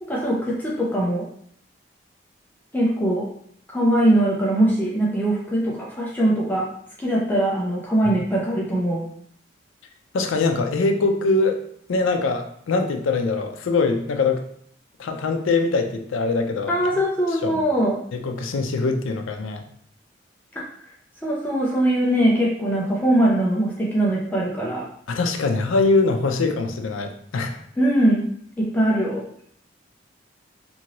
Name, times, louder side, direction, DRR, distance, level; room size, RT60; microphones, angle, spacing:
voice 1, 0.0-1.3 2.7-3.3 3.7-6.7 7.0-9.1 16.7-18.0 20.5-20.6 21.2-24.9 27.8-28.3 28.6-29.3, right 1 dB, 10° left, -5 dB, 0.4 m, -21 dB
voice 2, 10.1-11.6 11.9-14.4 15.0-16.7 17.4-17.6 18.1-19.6 25.1-27.6, left 3 dB, 90° left, 5 dB, 0.4 m, -22 dB
2.7 x 2.6 x 2.9 m, 0.65 s
head